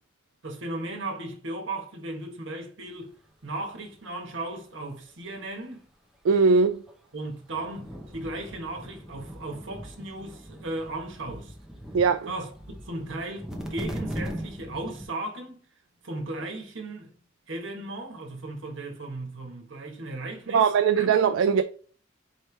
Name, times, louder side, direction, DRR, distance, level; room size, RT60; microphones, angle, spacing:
voice 1, 0.4-3.1 3.4-5.9 7.1-11.5 12.2-15.6 16.0-17.1 17.5-21.1, right 2 dB, 75° right, 1.2 m, -36 dB
voice 2, 6.2-6.8 11.9-12.3 20.5-21.6, right 5 dB, 90° right, 0.3 m, -20 dB
sound 1, 6.9-7.0 7.5-15.1, equal, 5° right, 0.7 m, -39 dB
4.4 x 3.1 x 3.3 m
head